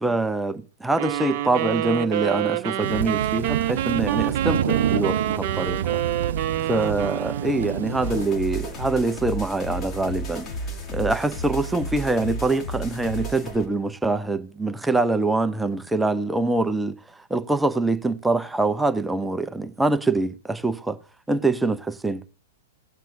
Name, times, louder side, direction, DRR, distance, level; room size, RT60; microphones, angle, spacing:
voice 1, 0.0-6.0 6.7-10.5 10.9-21.0 21.3-22.2, right 2 dB, 5° right, 0.6 m, -24 dB
sound 1, 1.0-7.9, right 13 dB, 45° right, 0.7 m, -27 dB
sound 2, 2.8-8.3, right 9 dB, 65° right, 0.4 m, -28 dB
sound 3, 8.0-13.7, right 1 dB, 30° left, 2.4 m, -32 dB
18.5 x 7.4 x 2.6 m
figure-of-eight pair, 105°, 0 cm